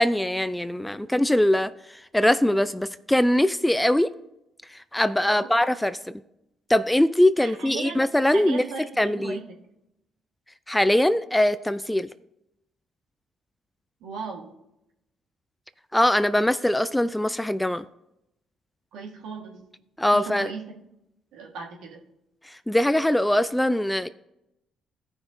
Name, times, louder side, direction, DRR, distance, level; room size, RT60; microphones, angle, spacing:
voice 1, 0.0-1.7 2.1-4.1 4.9-6.1 6.7-8.6 9.0-9.4 10.7-12.1 15.9-17.8 20.0-20.5 22.7-24.1, left 1 dB, 10° left, 14 dB, 0.4 m, -22 dB
voice 2, 7.4-9.5 14.0-14.5 18.9-19.7 20.1-20.7 21.3-22.0, right 5 dB, 75° right, 1 dB, 1.5 m, -37 dB
15.5 x 5.8 x 2.7 m, 0.85 s
hypercardioid pair, 55°, 0 cm